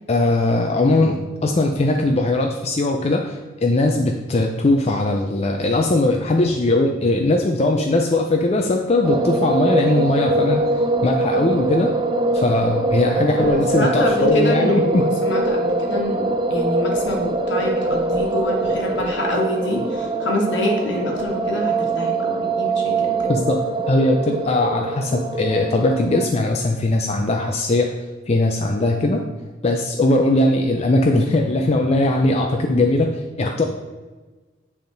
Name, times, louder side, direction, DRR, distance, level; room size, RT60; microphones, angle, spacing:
voice 1, 0.1-10.6 11.0-11.9 12.3-15.0 23.3-23.6 23.9-28.0 28.3-29.2 29.6-33.1 33.4-33.6, left 2 dB, 35° left, 2 dB, 0.4 m, -19 dB
sound 1, 9.0-26.3, right 2 dB, 25° right, 0.4 m, -23 dB
voice 2, 13.4-23.4, left 1 dB, 75° left, 0 dB, 1.5 m, -26 dB
9.1 x 3.6 x 3.9 m, 1.3 s
head